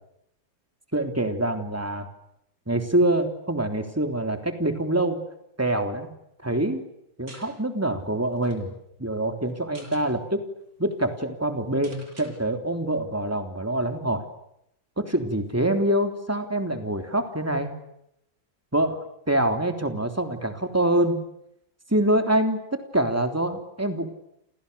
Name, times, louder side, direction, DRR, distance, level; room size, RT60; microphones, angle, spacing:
voice 1, 0.9-2.1 2.7-5.2 5.6-6.1 6.4-6.8 7.2-8.7 9.0-10.4 10.8-14.3 15.0-17.7 18.7-21.2 21.9-24.1, right 1 dB, 5° right, 5 dB, 3.3 m, -25 dB
sound 1, 7.3-7.5 8.0-8.1 8.3-8.6 9.5-10.1 10.6-10.7 10.9-11.1 11.8-12.3, right 1 dB, 45° right, 7.2 m, -47 dB
29.0 x 29.0 x 7.0 m, 0.79 s
omnidirectional pair, 2.1 m